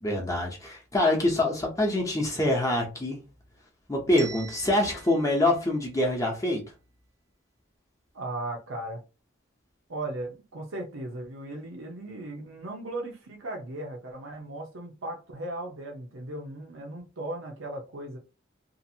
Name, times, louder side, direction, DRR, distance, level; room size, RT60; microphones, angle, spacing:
voice 1, 0.0-3.2 3.9-6.6, left 1 dB, 15° left, 0.7 m, -25 dB
Bell, 4.2-6.2, right 5 dB, 15° right, 0.4 m, -45 dB
voice 2, 8.1-9.0 9.9-18.2, right 1 dB, 80° right, 0.8 m, -37 dB
2.8 x 2.5 x 2.7 m
head